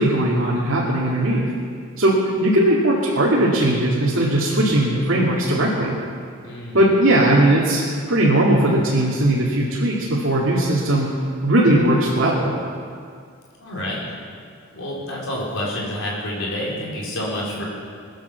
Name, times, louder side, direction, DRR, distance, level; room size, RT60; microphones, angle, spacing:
voice 1, 0.0-1.5 2.0-5.9 6.7-11.1 11.4-12.5, right 1 dB, 65° right, -6 dB, 2.5 m, -18 dB
voice 2, 6.4-6.8 13.6-14.0 14.7-17.6, left 1 dB, 65° left, -4 dB, 4.7 m, -28 dB
21.0 x 9.5 x 7.2 m, 2.2 s
head